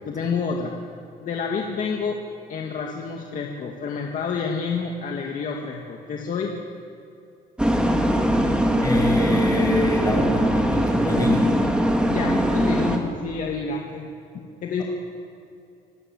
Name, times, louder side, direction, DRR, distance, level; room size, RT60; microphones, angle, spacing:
voice 1, 0.1-0.8 1.2-2.2 2.5-6.5 12.1-14.1 14.6-14.8, left 5 dB, 50° left, 0 dB, 2.1 m, -28 dB
sound 1, 7.6-13.0, equal, 5° right, 2.4 m, -21 dB
voice 2, 8.8-11.5, left 1 dB, 20° left, 1 dB, 6.1 m, -26 dB
26.5 x 13.0 x 7.9 m, 2.6 s
cardioid pair, 110°, 17 cm